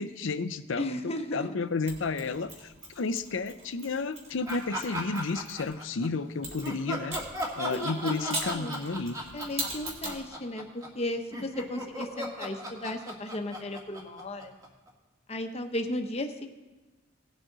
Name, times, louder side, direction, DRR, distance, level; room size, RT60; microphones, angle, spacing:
voice 1, 0.0-7.2 7.5-9.2, left 4 dB, 70° left, 12 dB, 0.6 m, -32 dB
voice 2, 0.8-1.6 7.7-8.8 9.3-14.6 15.3-16.5, left 1 dB, 30° left, 5 dB, 0.9 m, -35 dB
Mechanisms, 1.9-5.7 6.4-10.2, right 2 dB, 35° right, 2.7 m, -40 dB
sound 1, 4.5-6.1 6.6-14.9, equal, 20° right, 1.7 m, -36 dB
18.0 x 6.2 x 4.0 m, 1.2 s
head